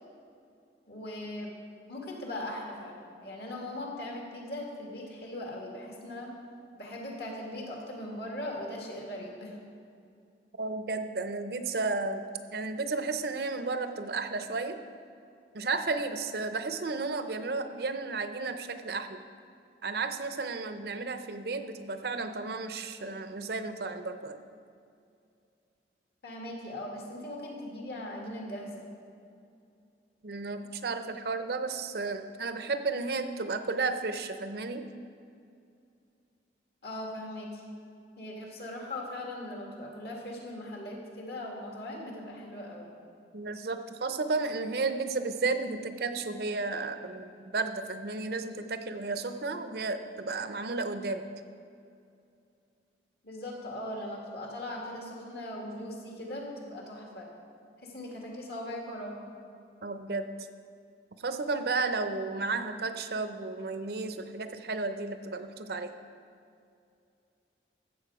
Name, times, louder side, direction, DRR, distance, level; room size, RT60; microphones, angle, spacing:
voice 1, 0.9-1.5 1.9-6.3 6.7-9.6 26.2-28.8 36.8-37.6 38.2-42.9 53.2-57.3 57.8-59.3, left 1 dB, 60° left, -1 dB, 2.1 m, -39 dB
voice 2, 10.6-12.2 12.5-14.8 15.5-19.2 19.8-24.4 30.2-34.9 43.3-51.2 59.8-60.2 61.2-65.9, right 3 dB, 55° right, 9 dB, 0.6 m, -33 dB
14.5 x 7.2 x 4.8 m, 2.5 s
head